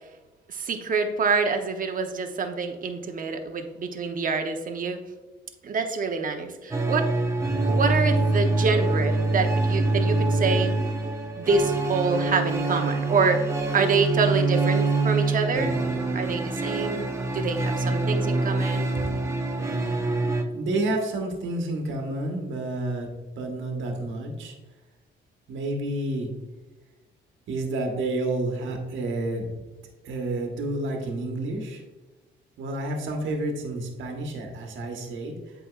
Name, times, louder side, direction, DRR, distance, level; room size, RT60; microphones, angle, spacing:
voice 1, 0.5-5.0 5.6-7.1 7.7-10.7 11.4-13.5 13.7-15.7 16.1-17.0 17.3-18.9, right 4 dB, 45° right, 6 dB, 0.8 m, -26 dB
sound 1, 6.7-20.4, right 2 dB, 15° right, 0.8 m, -25 dB
voice 2, 20.5-23.1 23.3-24.6 25.5-26.3 27.5-29.6 30.0-31.8 32.6-35.5, right 2 dB, 75° right, 2 dB, 1.3 m, -30 dB
7.9 x 4.9 x 2.4 m, 1.2 s
cardioid pair, 90°, 20 cm